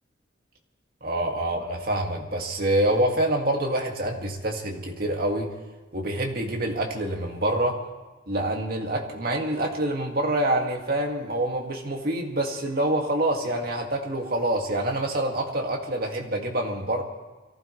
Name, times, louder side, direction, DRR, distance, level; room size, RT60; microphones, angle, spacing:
voice 1, 1.0-5.5 5.9-7.8 8.3-17.0, right 1 dB, 55° right, 1 dB, 2.1 m, -26 dB
23.0 x 15.5 x 3.3 m, 1.3 s
head